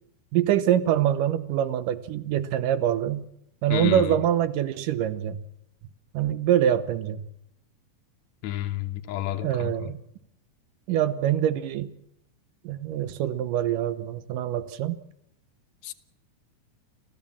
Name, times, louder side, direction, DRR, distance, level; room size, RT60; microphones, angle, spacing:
voice 1, 0.3-3.2 3.6-5.4 6.1-7.3 9.4-10.0 10.9-11.9 12.6-15.0, right 11 dB, 85° right, 2.7 m, -24 dB
voice 2, 3.7-4.1 8.4-9.9 15.8-15.9, left 12 dB, 70° left, 2.3 m, -30 dB
28.5 x 13.5 x 7.3 m
omnidirectional pair, 3.7 m